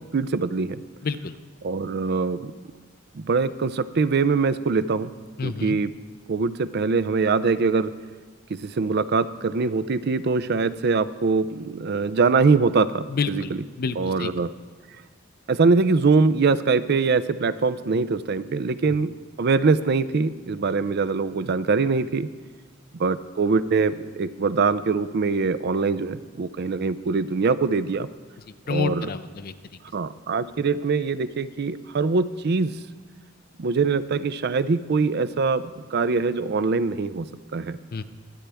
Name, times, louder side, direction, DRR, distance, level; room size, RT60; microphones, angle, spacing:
voice 1, 0.1-0.8 1.6-2.5 3.1-5.1 5.4-5.9 6.3-7.9 8.5-13.6 14.0-14.5 15.5-22.3 22.9-28.1 28.7-29.1 29.9-32.8 33.6-37.3 37.5-37.8, right 4 dB, 55° right, 15 dB, 0.5 m, -23 dB
voice 2, 1.0-1.3 5.4-5.8 13.1-13.5 13.8-14.3 28.7-29.5 37.9-38.0, left 4 dB, 50° left, 11 dB, 0.5 m, -28 dB
23.0 x 8.9 x 3.5 m, 1.4 s
head